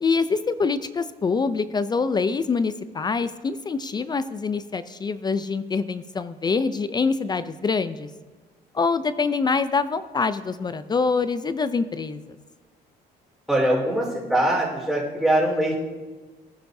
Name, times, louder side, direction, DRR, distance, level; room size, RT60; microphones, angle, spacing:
voice 1, 0.0-8.1 8.7-12.4, left 4 dB, 25° left, 13 dB, 0.4 m, -25 dB
voice 2, 13.5-15.7, right 1 dB, ahead, -6 dB, 4.2 m, -22 dB
18.5 x 10.0 x 2.7 m, 1.3 s
cardioid pair, 110°, 17 cm